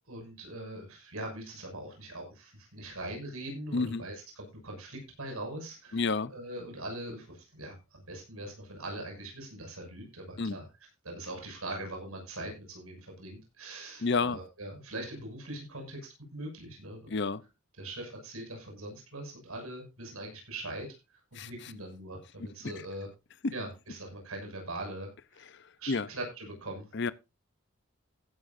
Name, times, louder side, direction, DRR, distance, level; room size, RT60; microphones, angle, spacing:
voice 1, 0.1-10.7 11.0-17.2 17.8-23.1 23.5-25.4 25.8-26.9, right 1 dB, 85° right, 6.4 m, -42 dB
voice 2, 3.7-4.0 5.9-6.3 10.4-10.6 14.0-14.4 17.1-17.4 21.3-21.5 23.4-23.5 25.9-26.1 26.9-27.1, left 4 dB, 55° left, 0.7 m, -29 dB
15.5 x 11.0 x 2.6 m
head